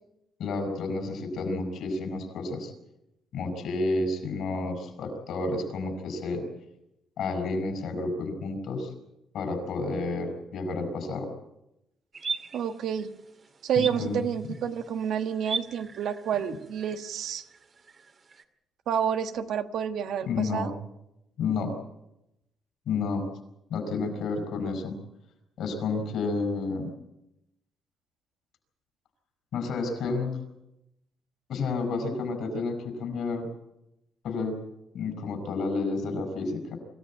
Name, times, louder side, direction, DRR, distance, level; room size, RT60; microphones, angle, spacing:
voice 1, 0.4-2.7 3.3-6.4 7.2-8.9 9.3-11.3 13.8-14.2 20.2-20.7 21.4-21.7 22.9-23.2 23.7-25.0 25.6-26.9 29.5-30.4 31.5-33.5 34.2-34.6 34.9-36.8, left 3 dB, 75° left, 7 dB, 6.3 m, -30 dB
sound 1, 12.1-18.4, right 5 dB, 45° right, 2.2 m, -40 dB
voice 2, 12.5-13.1 13.6-17.5 18.9-20.7, right 8 dB, 75° right, 8 dB, 1.4 m, -29 dB
25.5 x 14.5 x 9.0 m, 0.88 s
cardioid pair, 90°, 0 cm